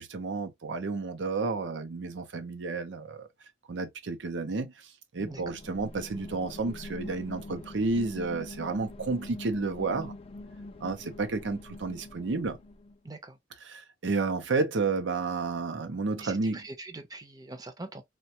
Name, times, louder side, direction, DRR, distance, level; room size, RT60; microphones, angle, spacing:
voice 1, 0.0-3.3 3.7-4.7 5.1-10.1 10.8-12.6 13.6-16.6, right 3 dB, 85° right, 0.6 m, -31 dB
sound 1, 5.2-13.0, left 2 dB, 35° left, 0.4 m, -44 dB
voice 2, 13.0-13.4 16.2-18.0, right 2 dB, 20° right, 0.6 m, -43 dB
3.3 x 2.2 x 2.7 m
head